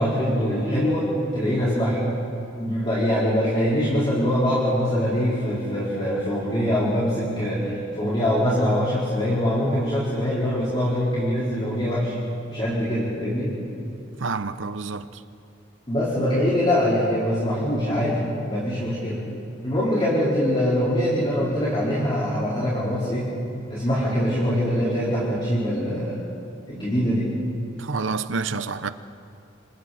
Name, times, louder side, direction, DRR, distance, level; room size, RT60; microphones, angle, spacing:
voice 1, 0.0-2.1 2.6-12.1 12.5-13.5 15.9-19.2 19.6-23.3 23.7-26.2 26.7-27.4, equal, 25° left, 4.7 m, -23 dB
voice 2, 14.2-15.1 27.8-28.9, right 4 dB, 80° right, 0.9 m, -28 dB
30.0 x 28.0 x 4.4 m
head